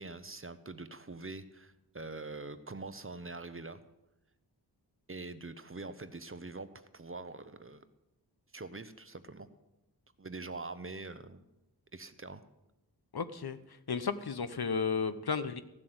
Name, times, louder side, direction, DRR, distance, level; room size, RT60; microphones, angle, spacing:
voice 1, 0.0-3.8 5.1-7.8 8.5-9.5 10.2-11.4 11.9-12.4, right 3 dB, 30° right, 12 dB, 0.8 m, -44 dB
voice 2, 13.1-13.6 13.9-15.6, left 5 dB, 60° left, 12 dB, 0.9 m, -33 dB
15.0 x 7.5 x 7.9 m, 0.95 s
wide cardioid pair, 85°, 42 cm